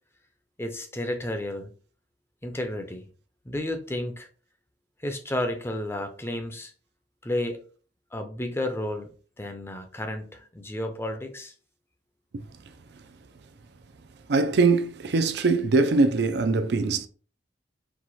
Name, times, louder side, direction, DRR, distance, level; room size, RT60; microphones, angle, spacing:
voice 1, 0.6-1.7 2.4-3.0 3.5-4.3 5.0-6.7 7.2-7.6 8.1-9.1 9.4-11.5, left 1 dB, 15° left, 0.6 m, -32 dB
voice 2, 14.3-17.1, right 3 dB, 65° right, 0.5 m, -22 dB
4.6 x 2.3 x 4.1 m
head